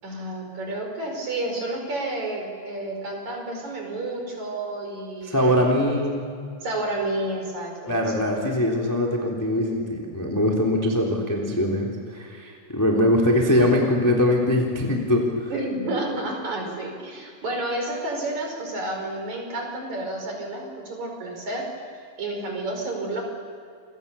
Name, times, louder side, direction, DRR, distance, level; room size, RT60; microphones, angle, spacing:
voice 1, 0.0-5.7 6.6-8.0 15.5-21.7 22.2-23.2, right 2 dB, 35° right, 2 dB, 6.1 m, -30 dB
voice 2, 5.2-6.2 7.9-15.5, left 1 dB, 5° left, -1 dB, 2.3 m, -22 dB
29.0 x 24.5 x 7.1 m, 2.4 s
omnidirectional pair, 5.7 m